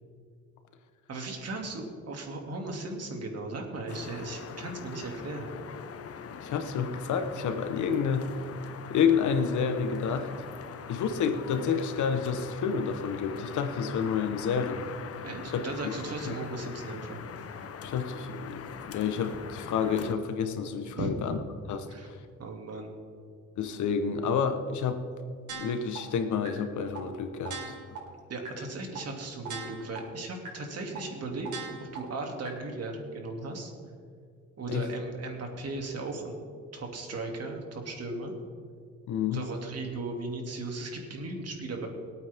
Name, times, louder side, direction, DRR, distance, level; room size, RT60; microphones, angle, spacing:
voice 1, 1.1-5.5 15.2-17.2 21.0-21.1 21.9-22.1 22.4-22.9 28.3-31.5 31.8-33.7 34.6-36.4 36.7-38.3 39.3-41.9, right 2 dB, 55° right, 2 dB, 2.7 m, -37 dB
sound 1, 3.9-20.1, left 7 dB, 50° left, 0.9 m, -42 dB
voice 2, 6.4-8.3 8.9-10.3 10.9-14.9 15.5-15.9 16.3-16.4 17.8-21.4 21.7-22.1 23.6-25.0 25.5-27.8 34.7-34.9 39.1-39.4, left 6 dB, 75° left, 8 dB, 1.2 m, -29 dB
sound 2, 25.5-26.0 26.4-26.5 26.9-27.0 27.4-28.0 28.4-28.5 28.9-29.0 29.4-30.0 30.4-30.5 30.9-31.0 31.4-32.0 32.4-32.5, right 5 dB, 75° right, 3.8 m, -39 dB
23.0 x 8.7 x 3.6 m, 2.2 s
cardioid pair, 90°, 30 cm